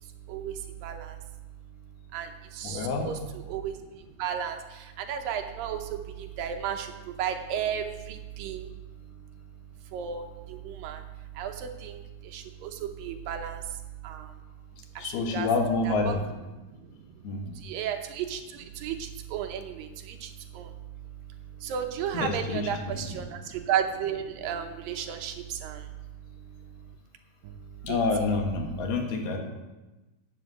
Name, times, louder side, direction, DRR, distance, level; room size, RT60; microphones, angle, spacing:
voice 1, 0.0-1.2 2.1-8.7 9.0-9.3 9.8-14.3 15.0-15.5 15.8-16.2 16.6-27.0 27.4-28.0, right 9 dB, 75° right, 5 dB, 2.3 m, -35 dB
voice 2, 2.6-3.1 15.0-16.2 17.2-17.6 22.1-23.1 27.8-29.4, left 3 dB, 80° left, 3 dB, 3.5 m, -28 dB
11.5 x 7.3 x 7.8 m, 1.1 s
omnidirectional pair, 4.4 m